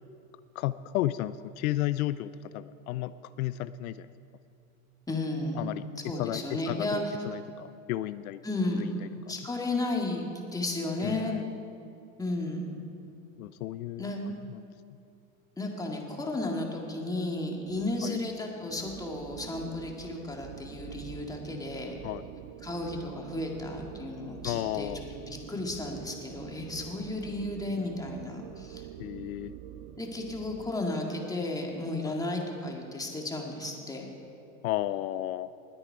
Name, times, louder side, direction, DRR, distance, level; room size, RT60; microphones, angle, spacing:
voice 1, 0.6-3.1 3.4-4.1 5.5-8.4 8.8-9.1 11.0-11.5 13.4-14.6 18.0-18.2 22.0-22.3 24.4-25.0 29.0-29.5 32.0-32.2 34.6-35.5, left 14 dB, 80° left, 15 dB, 0.5 m, -33 dB
voice 2, 5.1-5.7 6.1-7.2 8.4-8.9 9.3-11.4 12.2-12.8 14.0-14.2 15.6-22.0 22.6-24.9 25.3-28.8 30.0-34.1, left 2 dB, 10° left, 0 dB, 2.0 m, -33 dB
sound 1, 18.7-30.7, right 12 dB, 45° right, 0.6 m, -46 dB
20.0 x 8.7 x 4.7 m, 2.5 s
supercardioid pair, 115°, 42 cm